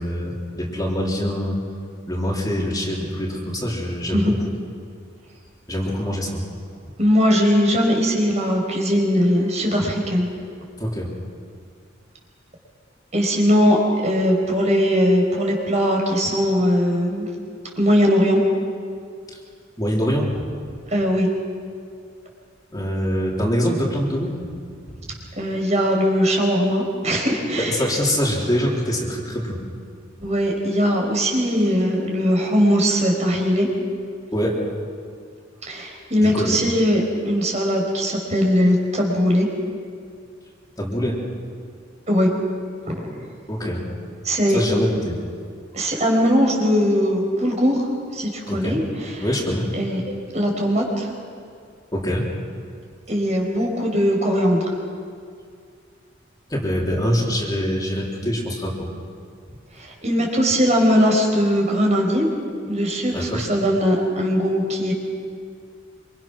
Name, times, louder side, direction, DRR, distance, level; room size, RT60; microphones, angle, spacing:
voice 1, 0.0-1.6 2.1-4.3 5.7-6.4 10.8-11.1 19.8-20.3 22.7-24.3 24.9-25.1 27.6-29.6 34.3-34.6 36.2-36.6 40.8-41.2 43.5-43.9 44.5-45.1 48.5-48.8 49.2-49.7 49.9-50.0 51.9-52.2 56.5-58.9 63.1-63.5, equal, 20° left, -3 dB, 3.8 m, -24 dB
voice 2, 7.0-10.3 13.1-17.3 17.8-18.4 20.9-21.3 25.4-27.8 30.2-33.7 35.7-39.5 42.1-42.3 42.9-43.1 44.2-44.6 45.7-47.8 48.1-49.3 49.7-51.1 53.1-54.7 59.8-62.3 62.7-64.9, equal, 35° right, 1 dB, 5.1 m, -20 dB
26.5 x 26.0 x 6.2 m, 2.2 s
head